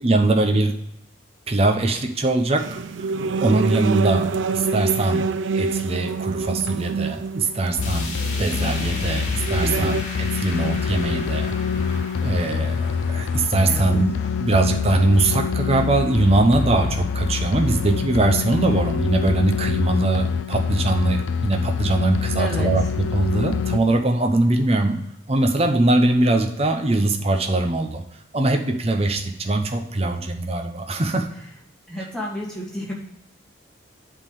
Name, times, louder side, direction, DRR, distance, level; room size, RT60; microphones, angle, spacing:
voice 1, 0.0-0.8 1.5-2.8 3.4-5.3 5.5-11.5 11.8-11.9 12.2-25.0 25.3-28.0 28.3-31.3, right 2 dB, 30° right, 4 dB, 0.7 m, -21 dB
sound 1, 2.6-10.0, right 5 dB, 70° right, 0.4 m, -26 dB
sound 2, 7.8-23.8, left 5 dB, 75° left, 0.4 m, -25 dB
sound 3, 7.8-18.0 18.4-18.5 18.9-19.0 19.8-19.9, left 3 dB, 35° left, 1.6 m, -38 dB
voice 2, 9.6-10.0 13.7-13.9 22.4-22.9 31.9-32.9, equal, 5° left, -4 dB, 1.7 m, -31 dB
7.9 x 3.8 x 6.5 m, 0.82 s
head